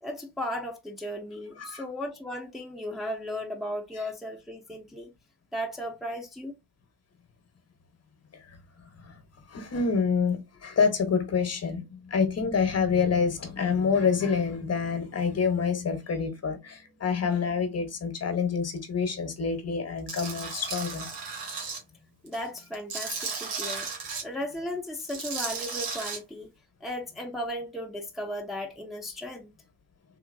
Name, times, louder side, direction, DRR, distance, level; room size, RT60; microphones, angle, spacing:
voice 1, 0.0-5.1 5.5-6.5 22.2-23.9 24.2-26.5 26.8-29.5, left 1 dB, ahead, 0.9 m, -35 dB
voice 2, 9.5-21.1, left 5 dB, 35° left, 1.2 m, -27 dB
Tools, 20.1-21.8 22.3-24.2 25.0-26.2, right 5 dB, 70° right, 1.6 m, -35 dB
3.7 x 2.8 x 2.6 m
supercardioid pair, 70°, 41 cm